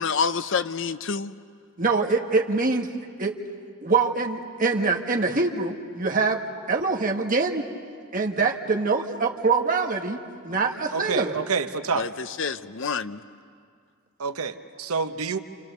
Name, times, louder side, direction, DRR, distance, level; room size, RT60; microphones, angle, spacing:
voice 1, 0.0-1.3 10.5-10.6 12.0-13.2, left 5 dB, 60° left, 12 dB, 0.6 m, -28 dB
voice 2, 1.8-2.9 3.2-3.4 3.8-6.4 6.7-7.6 8.1-11.4, right 4 dB, 40° right, 1 dB, 1.6 m, -24 dB
voice 3, 10.9-12.1 14.2-15.4, right 5 dB, 85° right, 9 dB, 1.0 m, -28 dB
28.5 x 28.0 x 6.7 m, 2.2 s
head